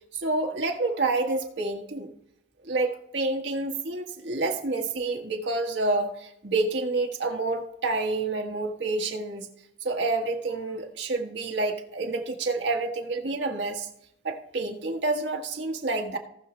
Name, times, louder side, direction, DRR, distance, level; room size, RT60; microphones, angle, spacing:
voice 1, 0.1-2.1 2.6-9.5 9.8-13.9 14.2-16.2, right 3 dB, 80° right, 2 dB, 1.5 m, -28 dB
18.5 x 6.1 x 3.2 m, 0.75 s
head